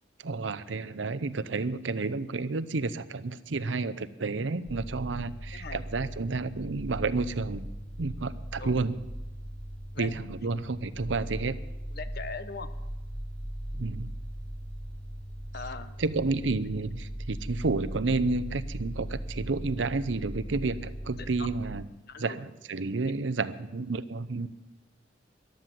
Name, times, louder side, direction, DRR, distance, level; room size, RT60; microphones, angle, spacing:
voice 1, 0.2-7.6 8.0-9.0 10.0-11.5 13.7-14.1 16.0-21.8 22.2-24.5, right 3 dB, 80° right, 13 dB, 0.7 m, -31 dB
sound 1, 4.6-21.8, equal, 35° left, 2.2 m, -39 dB
voice 2, 5.5-5.8 8.6-8.8 9.9-10.1 11.9-12.7 15.5-15.9 21.2-21.5 22.1-22.4, left 4 dB, 55° left, 12 dB, 1.0 m, -40 dB
13.5 x 12.0 x 7.6 m, 0.99 s
head